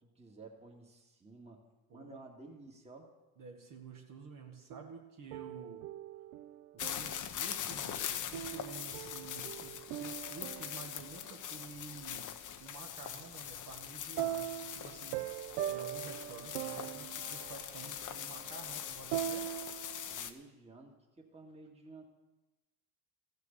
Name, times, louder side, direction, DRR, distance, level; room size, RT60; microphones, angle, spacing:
voice 1, 0.0-1.6 1.9-3.1 20.0-22.0, right 3 dB, 15° right, 0 dB, 2.0 m, -53 dB
voice 2, 1.9-2.2 3.4-5.8 6.7-12.3 12.6-19.5, right 4 dB, 45° right, 1 dB, 1.9 m, -51 dB
sound 1, 4.7-7.4 8.3-11.7 14.2-20.2, right 12 dB, 80° right, 0.7 m, -42 dB
sound 2, 6.8-20.3, left 9 dB, 40° left, 1.0 m, -42 dB
14.0 x 6.7 x 6.7 m, 1.1 s
supercardioid pair, 90°, 46 cm